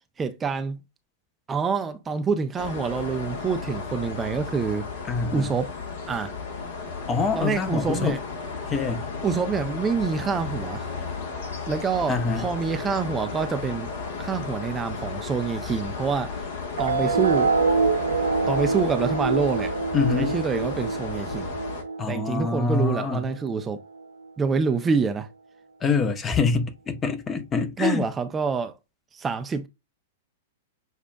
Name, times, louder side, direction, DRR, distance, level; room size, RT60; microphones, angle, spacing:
voice 1, 0.2-0.8 1.5-4.9 5.3-5.7 6.1-6.3 7.3-8.2 9.2-10.9 11.7-13.9 14.2-16.3 16.8-17.5 18.5-19.7 20.2-21.6 22.1-23.8 24.4-25.3 27.8-28.7 29.1-29.7, right 5 dB, 20° right, 0.4 m, -26 dB
sound 1, 2.6-21.8, left 5 dB, 60° left, 1.2 m, -34 dB
voice 2, 5.1-5.5 7.1-8.1 8.7-9.0 12.1-12.5 19.9-20.4 22.0-23.3 25.8-28.1, left 5 dB, 20° left, 0.7 m, -25 dB
sound 2, 16.8-23.8, right 4 dB, 75° right, 0.5 m, -26 dB
6.7 x 2.4 x 2.2 m
hypercardioid pair, 105°, 0 cm